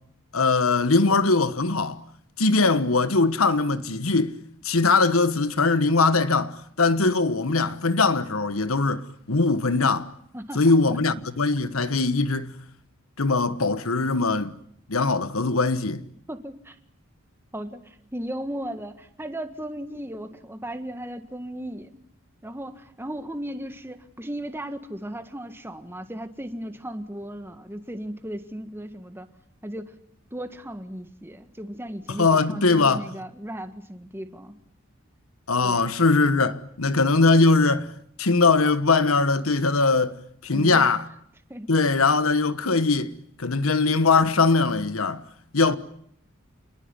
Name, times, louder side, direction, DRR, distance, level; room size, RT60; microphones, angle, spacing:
voice 1, 0.3-2.0 2.4-4.4 4.6-10.1 10.5-12.5 13.2-14.6 14.9-16.0 32.2-33.1 35.5-37.9 38.2-40.2 40.4-41.0 41.7-43.1 43.4-45.2 45.5-45.8, left 3 dB, 90° left, 1.4 m, -21 dB
voice 2, 16.3-16.8 17.5-22.0 22.4-29.3 29.6-29.9 30.3-34.5 35.6-35.9 40.5-40.9 41.5-41.7, right 1 dB, 10° right, 1.7 m, -36 dB
28.0 x 21.0 x 9.8 m
head